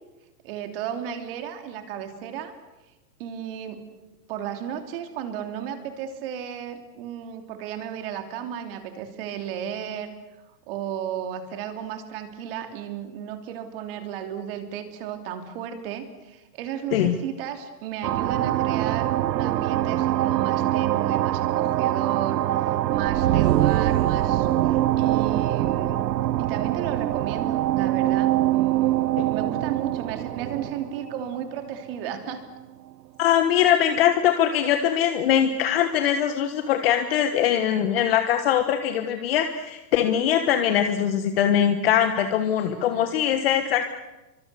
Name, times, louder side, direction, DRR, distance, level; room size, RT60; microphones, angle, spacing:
voice 1, 0.4-2.5 3.2-3.8 4.3-10.1 10.7-26.0 26.4-32.4 42.6-43.1, right 9 dB, 35° right, 6 dB, 3.0 m, -34 dB
sound 1, 18.0-32.2, right 13 dB, 75° right, 0.9 m, -23 dB
voice 2, 33.2-43.9, left 10 dB, 35° left, 7 dB, 1.4 m, -22 dB
30.0 x 24.5 x 6.9 m, 1.1 s
supercardioid pair, 175°, 50 cm